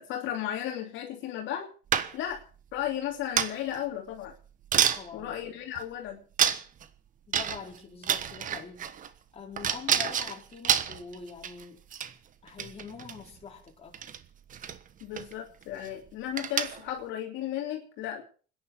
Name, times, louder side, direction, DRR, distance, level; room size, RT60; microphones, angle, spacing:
voice 1, 0.0-1.7 2.1-2.4 2.7-4.3 5.1-6.2 15.0-18.2, left 11 dB, 65° left, 3.0 m, -34 dB
sound 1, 1.9-2.4 3.4-3.8 4.3-4.4 4.7-5.0 5.8-5.9 6.4-6.8 7.3-7.8 8.0-9.1 9.6-11.6 11.9-12.1 12.5-13.2 13.9-14.2 14.5-14.8 15.1-15.3 15.6-15.9 16.4-16.9, right 9 dB, 40° right, 1.3 m, -28 dB
voice 2, 4.9-5.5 7.3-11.8 12.4-14.0, left 6 dB, 30° left, 4.2 m, -44 dB
29.0 x 10.5 x 4.6 m
cardioid pair, 120°, 21 cm